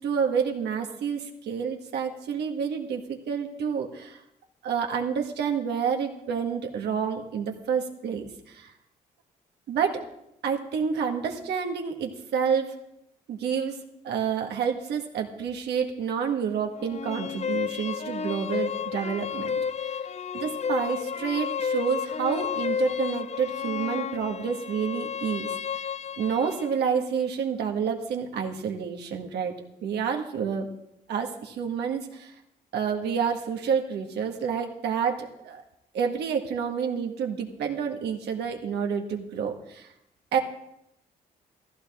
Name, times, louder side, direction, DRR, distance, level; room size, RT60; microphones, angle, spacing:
voice 1, 0.0-4.2 4.6-8.7 9.7-10.0 10.4-12.7 13.3-13.8 14.0-20.0 20.3-25.8 26.2-29.5 29.8-30.7 31.1-32.3 32.7-35.6 35.9-39.9 40.3-40.4, right 7 dB, 80° right, 3 dB, 1.7 m, -29 dB
sound 1, 16.8-26.7, left 7 dB, 40° left, 0.5 m, -32 dB
14.5 x 14.5 x 3.6 m, 0.81 s
supercardioid pair, 60°, 17 cm